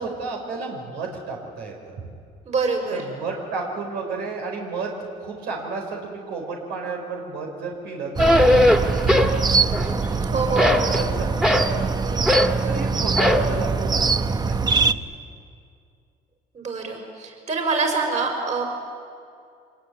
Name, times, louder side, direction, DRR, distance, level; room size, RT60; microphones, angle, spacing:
voice 1, 0.0-2.0 2.9-10.0 10.3-12.3 12.7-14.0 14.5-15.0, right 4 dB, 90° right, 1 dB, 4.9 m, -32 dB
voice 2, 2.5-3.0 10.2-10.9 16.5-18.6, right 4 dB, 45° right, 3 dB, 5.7 m, -25 dB
sound 1, 8.2-9.4 9.7-10.2 10.6-11.7 12.3-12.6 13.2-13.5, left 1 dB, 5° right, 2.0 m, -18 dB
sound 2, 8.2-14.9, right 4 dB, 25° right, 0.8 m, -23 dB
25.5 x 20.0 x 9.6 m, 2.3 s
cardioid pair, 110°, 17 cm